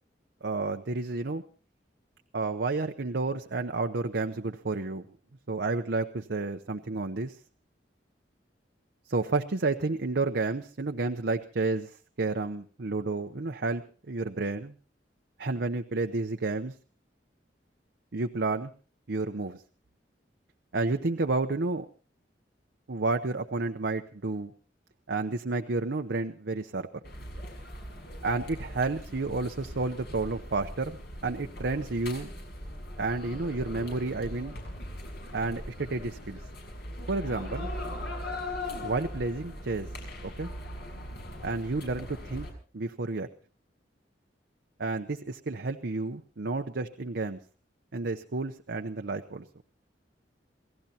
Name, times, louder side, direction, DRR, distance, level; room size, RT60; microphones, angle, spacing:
voice 1, 0.4-1.4 2.3-5.0 5.5-7.4 9.1-14.7 15.4-16.7 18.1-18.7 19.1-19.6 20.7-21.9 22.9-24.5 25.1-26.9 28.2-31.0 31.2-32.3 33.0-34.6 35.3-36.4 37.1-37.7 38.8-39.9 40.2-40.5 41.4-42.5 42.7-43.3 44.8-47.4 47.9-49.4, right 3 dB, 65° right, 5 dB, 0.8 m, -31 dB
sound 1, 27.0-42.5, left 1 dB, 65° left, 6.3 m, -40 dB
28.0 x 18.0 x 2.9 m, 0.39 s
head